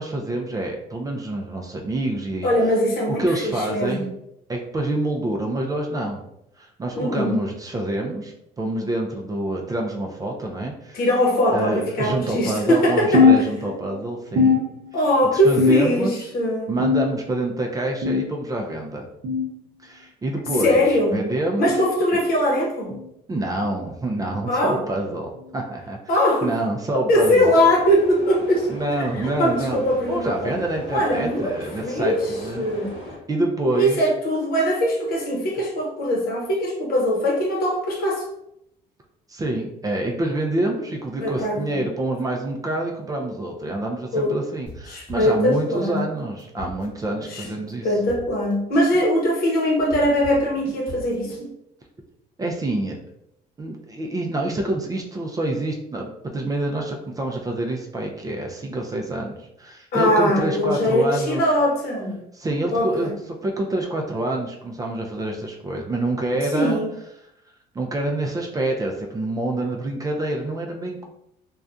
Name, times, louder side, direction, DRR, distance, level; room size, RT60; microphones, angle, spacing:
voice 1, 0.0-2.5 3.2-4.1 4.5-6.2 6.6-11.0 11.5-14.6 15.3-16.3 16.7-19.1 19.8-20.8 21.1-21.7 23.3-26.0 26.4-27.5 28.7-29.8 30.1-32.6 33.3-34.0 39.3-47.9 52.4-53.0 53.6-61.4 62.3-63.1 63.4-66.8 67.7-71.0, right 1 dB, 20° right, 1 dB, 0.4 m, -27 dB
voice 2, 2.4-4.1 7.0-7.4 10.9-13.5 14.9-16.7 20.6-21.2 21.6-23.0 24.5-24.8 26.1-26.6 27.1-28.7 29.2-30.6 30.9-31.5 31.8-32.9 33.7-38.2 41.2-41.8 44.1-44.4 44.9-46.1 47.3-47.4 47.8-51.5 59.9-62.2 62.7-63.2 66.5-66.9, equal, 65° left, -1 dB, 0.8 m, -21 dB
sound 1, 13.1-14.0 14.4-15.2 15.6-16.2 16.8-17.4 18.0-18.4 19.2-19.5 20.5-20.7 21.7-21.9 22.9-23.1 24.1-24.3 25.3-25.5 26.6-26.7 27.8-27.9, left 5 dB, 55° right, 0.6 m, -21 dB
sound 2, 27.1-33.2, left 1 dB, 35° left, 0.9 m, -38 dB
sound 3, 44.7-45.7 46.0-46.1 46.4-47.7 48.1-51.5, equal, 10° left, 1.0 m, -39 dB
2.6 x 2.2 x 2.3 m, 0.79 s
cardioid pair, 110°, 17 cm